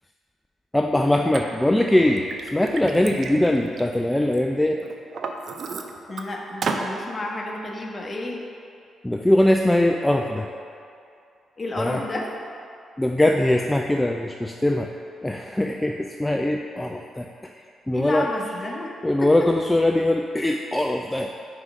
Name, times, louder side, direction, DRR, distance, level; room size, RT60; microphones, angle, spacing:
voice 1, 0.7-2.2 2.5-4.8 9.0-10.5 11.8-12.0 13.0-14.9 15.2-18.3 19.0-21.3, left 1 dB, 15° left, 3 dB, 0.3 m, -21 dB
Liquid, 1.3-1.4 2.0-4.4 4.8-6.2 6.6-6.9, right 4 dB, 55° right, 0.4 m, -32 dB
voice 2, 6.1-8.4 11.6-12.3 17.9-18.9 19.2-19.3, left 2 dB, 35° left, -1 dB, 0.9 m, -31 dB
4.8 x 3.8 x 5.2 m, 2.5 s
hypercardioid pair, 40°, 0 cm